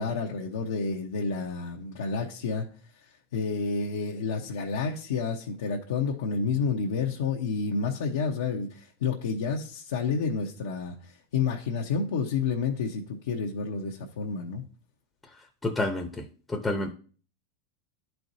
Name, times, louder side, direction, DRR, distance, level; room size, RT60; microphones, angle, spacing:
voice 1, 0.0-2.7 3.3-14.6, left 5 dB, 80° left, 0.9 m, -30 dB
voice 2, 15.6-16.9, left 2 dB, 15° left, 0.8 m, -29 dB
11.5 x 4.5 x 2.7 m
hypercardioid pair, 110°, 0 cm